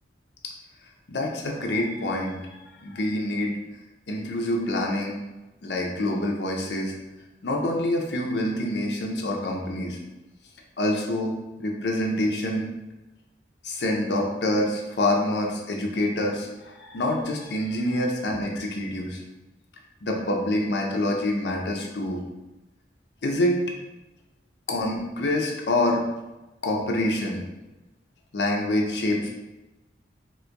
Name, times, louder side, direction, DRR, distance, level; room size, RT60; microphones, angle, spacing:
voice 1, 1.1-3.6 4.1-5.2 5.6-6.9 7.4-10.0 10.8-12.7 13.6-19.2 20.0-22.2 23.2-23.6 24.7-26.0 26.6-27.4 28.3-29.3, left 1 dB, 70° left, 0 dB, 0.6 m, -26 dB
4.3 x 2.5 x 2.3 m, 1.1 s
head